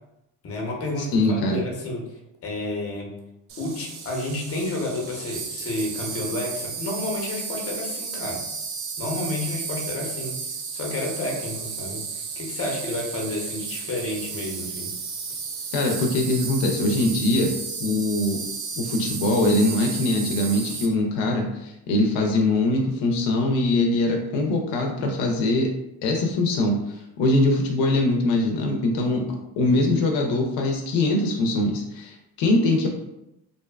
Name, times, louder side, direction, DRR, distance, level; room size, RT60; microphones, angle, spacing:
voice 1, 0.4-3.1 3.6-8.4 9.0-10.4 10.7-14.9, left 2 dB, 30° left, 0 dB, 0.7 m, -30 dB
voice 2, 1.0-1.6 15.7-17.5 17.8-18.4 18.8-25.7 26.0-29.2 29.6-32.9, left 2 dB, 75° left, 2 dB, 0.6 m, -22 dB
Insect, 3.5-20.9, right 5 dB, 60° right, 0.6 m, -33 dB
2.6 x 2.2 x 2.2 m, 0.87 s
cardioid pair, 105°, 45 cm